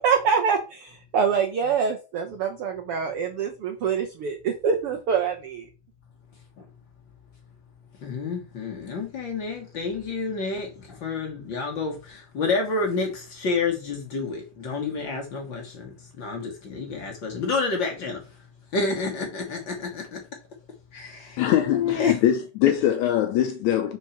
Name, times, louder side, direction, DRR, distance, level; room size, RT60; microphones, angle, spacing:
voice 1, 0.0-5.7, right 6 dB, 80° right, 1.2 m, -25 dB
voice 2, 8.0-18.2 18.7-20.2 20.9-21.4 21.7-22.2, left 4 dB, 45° left, 1.8 m, -29 dB
voice 3, 21.4-24.0, left 11 dB, 80° left, 1.7 m, -22 dB
5.4 x 4.6 x 5.8 m
omnidirectional pair, 3.7 m